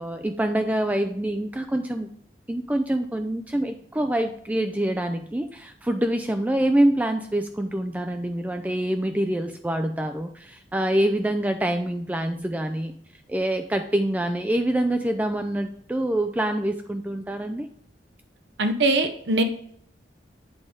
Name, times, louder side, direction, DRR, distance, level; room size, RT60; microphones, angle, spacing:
voice 1, 0.0-2.1 2.5-13.0 13.3-17.7, right 1 dB, 10° right, 6 dB, 0.3 m, -25 dB
voice 2, 18.6-19.4, right 2 dB, 75° right, 6 dB, 0.7 m, -21 dB
8.4 x 3.7 x 4.9 m, 0.65 s
head